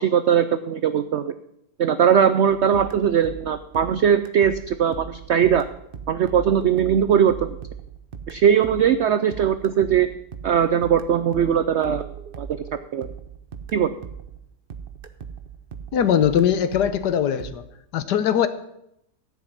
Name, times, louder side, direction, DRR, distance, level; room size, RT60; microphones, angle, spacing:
voice 1, 0.0-1.3 1.8-5.7 6.1-7.6 8.3-10.1 10.4-12.0 12.4-12.5 12.9-13.1 13.7-13.9, right 8 dB, 75° right, 11 dB, 0.6 m, -20 dB
sound 1, 2.5-14.4 14.7-17.5, right 7 dB, 45° right, 0.8 m, -39 dB
voice 2, 15.9-17.6 17.9-18.5, left 9 dB, 80° left, 12 dB, 1.5 m, -20 dB
14.0 x 5.7 x 8.6 m, 0.80 s
omnidirectional pair, 1.8 m